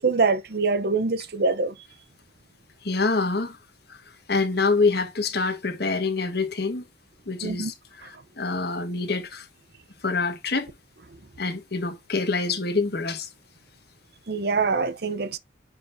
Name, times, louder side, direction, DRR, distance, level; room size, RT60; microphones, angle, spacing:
voice 1, 0.0-1.7 7.4-7.7 14.3-15.4, right 4 dB, 55° right, 0.7 m, -24 dB
voice 2, 2.8-3.6 3.9-4.0 4.3-6.8 7.3-9.5 10.0-10.7 11.4-13.3, left 3 dB, 55° left, 1.4 m, -26 dB
9.7 x 3.6 x 2.6 m
head